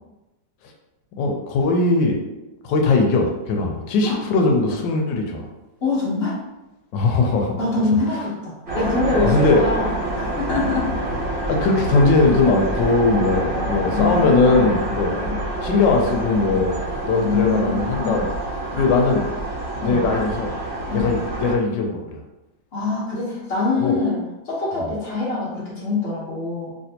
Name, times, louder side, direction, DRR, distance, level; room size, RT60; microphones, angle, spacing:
voice 1, 1.2-2.2 2.6-5.5 6.9-7.6 9.2-9.8 11.5-15.2 15.6-16.8 17.1-18.2 18.7-19.2 19.8-20.5 20.9-22.2 23.8-23.9 24.8-24.9, left 3 dB, 80° left, 2 dB, 1.3 m, -19 dB
voice 2, 5.8-6.4 7.6-10.9 13.5-14.7 15.2-15.4 17.2-18.2 19.8-20.0 20.9-21.1 22.7-24.2 24.4-26.7, left 3 dB, 40° left, -6 dB, 1.0 m, -24 dB
sound 1, 8.7-21.5, right 1 dB, 40° right, 0.8 m, -27 dB
3.3 x 2.8 x 2.8 m, 0.98 s
omnidirectional pair, 2.0 m